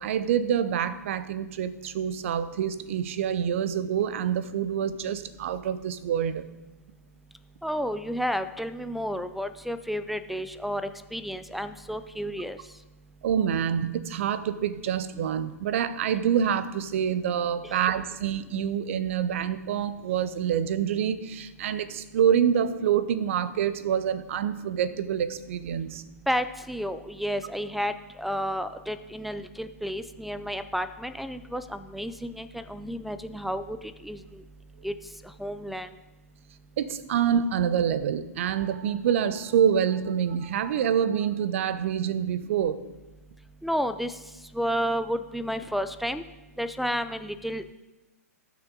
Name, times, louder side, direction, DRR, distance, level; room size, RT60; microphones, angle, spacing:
voice 1, 0.0-6.5 13.2-26.0 36.8-42.8, right 8 dB, 50° right, 13 dB, 0.8 m, -26 dB
voice 2, 7.6-10.8 11.1-12.6 17.6-17.7 26.3-27.9 28.2-33.8 34.0-34.4 34.8-34.9 35.4-35.9 43.6-44.1 44.5-46.2 46.6-47.7, equal, ahead, 12 dB, 0.4 m, -31 dB
17.5 x 6.3 x 3.9 m, 1.1 s
figure-of-eight pair, 120°, 9 cm